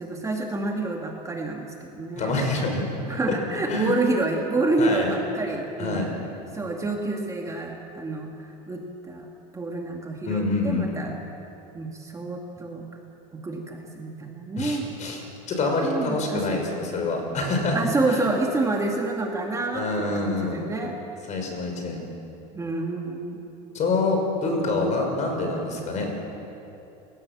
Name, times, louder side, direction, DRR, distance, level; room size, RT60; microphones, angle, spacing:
voice 1, 0.0-2.4 3.1-6.1 6.5-11.2 11.7-12.9 13.3-14.8 15.8-16.6 17.7-21.0 22.5-23.4, right 2 dB, 15° right, 1 dB, 2.2 m, -28 dB
voice 2, 2.2-2.9 3.3-3.4 3.7-3.9 4.8-5.1 5.8-6.1 10.2-10.9 14.6-15.2 15.5-18.3 19.7-20.6 21.3-22.0 23.7-26.2, left 3 dB, 40° left, 3 dB, 5.9 m, -26 dB
30.0 x 17.0 x 7.5 m, 2.9 s
supercardioid pair, 125°, 20 cm